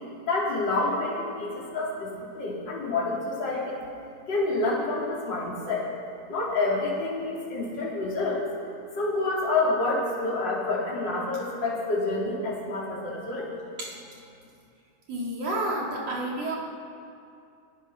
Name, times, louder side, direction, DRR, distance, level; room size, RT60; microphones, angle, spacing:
voice 1, 0.3-3.8 4.3-5.9 6.3-8.5 8.9-13.5, left 2 dB, 25° left, -5 dB, 4.3 m, -28 dB
voice 2, 15.1-16.6, right 1 dB, 40° right, -3 dB, 3.9 m, -30 dB
24.0 x 17.5 x 6.1 m, 2.5 s
omnidirectional pair, 5.0 m